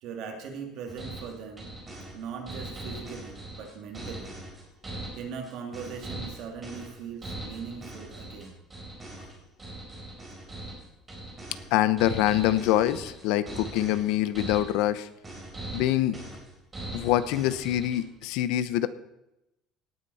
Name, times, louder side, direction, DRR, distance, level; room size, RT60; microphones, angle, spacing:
voice 1, 0.0-1.7 2.1-4.4 5.1-8.6, right 6 dB, 60° right, 3 dB, 2.7 m, -40 dB
sound 1, 0.9-18.2, right 1 dB, 15° right, 4.5 m, -40 dB
voice 2, 11.7-15.1 15.7-16.2 16.9-18.9, left 13 dB, 80° left, 13 dB, 0.8 m, -25 dB
18.0 x 9.8 x 4.3 m, 0.87 s
cardioid pair, 160°, 0 cm